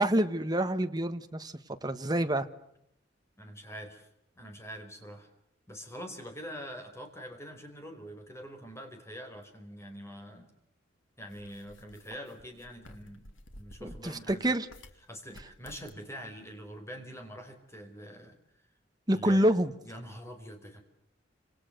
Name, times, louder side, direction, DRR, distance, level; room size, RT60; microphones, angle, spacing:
voice 1, 0.0-1.5 1.8-2.5 13.8-14.7 19.1-19.7, right 1 dB, 20° right, 7 dB, 1.5 m, -27 dB
voice 2, 3.4-4.1 4.4-5.3 5.7-10.5 11.2-13.2 13.5-14.5 15.1-18.4 19.1-19.5 19.8-20.8, equal, 15° left, 5 dB, 4.9 m, -44 dB
sound 1, 11.3-15.0 15.3-16.1, left 1 dB, 90° left, 2.3 m, -52 dB
29.5 x 27.0 x 6.8 m, 0.78 s
head